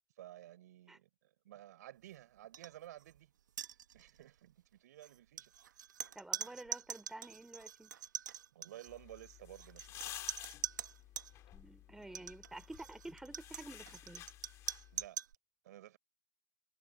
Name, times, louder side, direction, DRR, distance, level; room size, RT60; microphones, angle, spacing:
voice 1, 0.2-3.3 3.9-5.5 8.5-10.4 14.9-15.2 15.6-16.0, right 13 dB, 65° right, 5.1 m, -54 dB
sound 1, 2.5-2.7 3.0-3.2 3.5-4.2 5.0-11.3 12.0-15.3, right 9 dB, 90° right, 1.2 m, -44 dB
voice 2, 6.1-7.9 11.5-14.3, right 2 dB, 5° right, 3.1 m, -50 dB
sound 2, 8.9-15.1, left 14 dB, 30° left, 2.5 m, -52 dB
hypercardioid pair, 140°, 10 cm